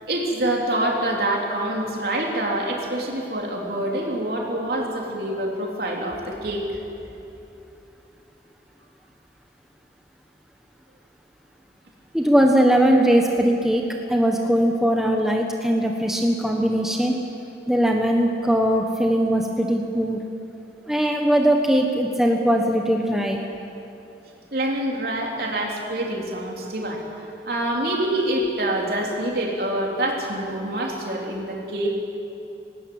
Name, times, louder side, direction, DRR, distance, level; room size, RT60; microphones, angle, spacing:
voice 1, 0.1-6.8 24.5-32.0, right 1 dB, 55° right, -1 dB, 3.7 m, -26 dB
voice 2, 12.1-17.1 17.7-20.2 20.9-23.4, equal, ahead, 1 dB, 1.2 m, -20 dB
19.0 x 19.0 x 8.9 m, 3.0 s
head